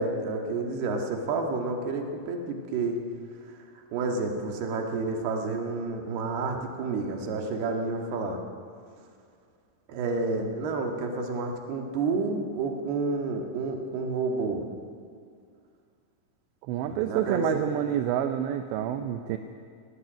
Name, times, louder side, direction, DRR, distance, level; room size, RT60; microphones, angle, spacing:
voice 1, 0.0-3.0 3.7-8.4 9.9-14.6 16.9-17.7, right 3 dB, 60° right, 2 dB, 3.6 m, -30 dB
voice 2, 16.7-19.4, right 10 dB, 80° right, 7 dB, 2.8 m, -28 dB
18.5 x 18.0 x 9.2 m, 2.2 s
omnidirectional pair, 5.6 m